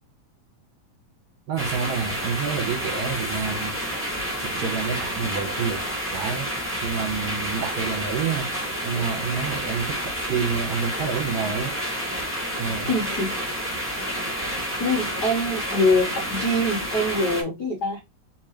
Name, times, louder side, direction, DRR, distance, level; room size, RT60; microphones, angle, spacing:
voice 1, 1.5-3.7 4.4-5.8 6.1-6.5 6.8-11.8 12.6-12.9, right 6 dB, 70° right, 2.0 m, -28 dB
sound 1, 1.6-17.4, equal, 10° right, 0.6 m, -29 dB
voice 2, 12.9-13.5 14.8-18.0, left 1 dB, 75° left, 0.9 m, -24 dB
4.5 x 3.8 x 3.0 m
omnidirectional pair, 4.0 m